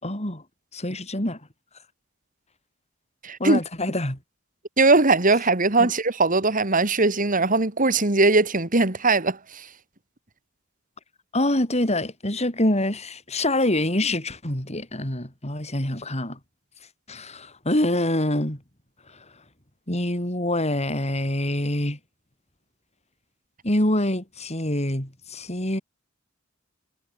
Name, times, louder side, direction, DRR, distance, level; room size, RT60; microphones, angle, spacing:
voice 1, 0.0-0.4 0.7-1.4 3.4-4.2 5.8-5.9 11.3-16.4 17.1-18.6 19.9-22.0 23.6-25.8, left 1 dB, 35° left, 6.7 m, -25 dB
voice 2, 3.2-3.6 4.8-9.6, right 3 dB, 40° right, 2.6 m, -20 dB
head